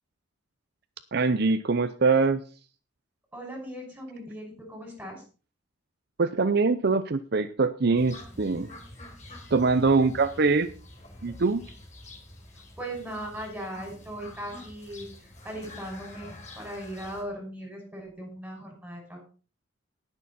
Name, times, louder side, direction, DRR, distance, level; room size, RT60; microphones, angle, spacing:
voice 1, 1.1-2.4 6.2-8.7 9.5-10.7 11.2-11.6, right 4 dB, 55° right, 10 dB, 0.6 m, -23 dB
voice 2, 3.3-5.2 12.8-19.2, right 1 dB, 5° right, 1 dB, 5.7 m, -38 dB
sound 1, 7.9-17.2, left 1 dB, 35° left, 4.2 m, -47 dB
18.5 x 6.9 x 4.2 m, 0.36 s
head